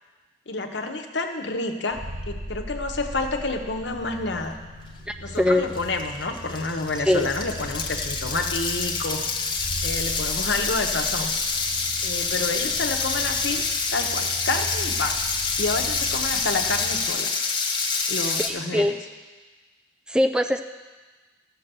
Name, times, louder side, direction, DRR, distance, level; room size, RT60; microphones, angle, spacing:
voice 1, 0.5-2.0 2.3-4.6 5.2-9.2 9.8-11.3 12.0-13.6 13.9-15.1 15.6-17.3 18.1-18.9, left 3 dB, 70° left, 4 dB, 1.1 m, -29 dB
sound 1, 1.9-17.1, right 1 dB, 90° right, 3.1 m, -39 dB
voice 2, 5.1-5.7 7.1-7.3 18.2-18.9 20.1-20.6, left 1 dB, 5° right, 7 dB, 0.3 m, -22 dB
sound 2, 5.3-5.4 5.7-18.5, left 4 dB, 25° left, 0.9 m, -27 dB
14.5 x 6.6 x 6.8 m, 1.3 s
head